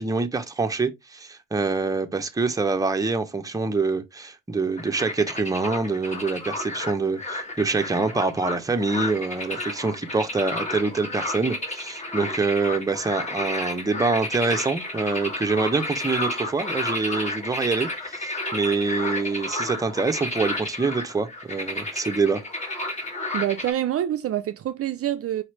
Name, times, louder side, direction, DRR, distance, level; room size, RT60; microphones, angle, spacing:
voice 1, 0.0-22.4, right 3 dB, 10° right, 0.7 m, -25 dB
sound 1, 4.8-23.7, left 2 dB, 25° left, 1.4 m, -31 dB
voice 2, 23.3-25.4, right 12 dB, 50° right, 0.4 m, -26 dB
5.0 x 3.0 x 3.1 m
cardioid pair, 90°, 30 cm